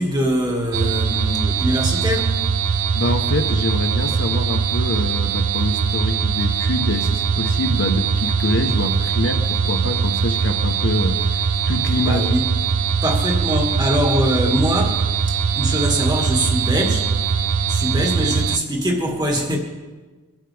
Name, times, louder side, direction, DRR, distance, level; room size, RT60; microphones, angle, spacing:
voice 1, 0.0-2.4 12.0-12.4 13.0-17.2 17.7-19.6, equal, 20° right, 0 dB, 2.2 m, -22 dB
sound 1, 0.7-18.6, right 6 dB, 70° right, 0.5 m, -21 dB
voice 2, 2.9-12.3, left 1 dB, 55° left, 6 dB, 1.1 m, -25 dB
24.5 x 11.5 x 3.5 m, 1.4 s
head